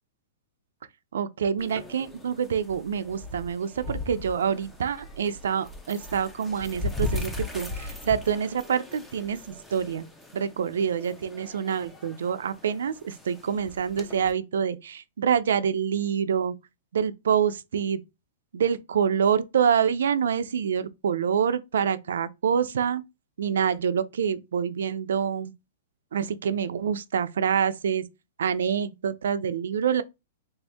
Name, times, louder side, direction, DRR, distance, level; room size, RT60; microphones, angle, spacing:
voice 1, 1.1-10.1 10.3-16.5 16.9-18.0 18.5-23.0 23.4-25.5 26.1-28.0 28.4-30.0, right 7 dB, 80° right, 0.4 m, -26 dB
sound 1, 1.6-14.3, left 2 dB, 10° left, 0.6 m, -38 dB
3.4 x 2.6 x 3.4 m
hypercardioid pair, 140°, 0 cm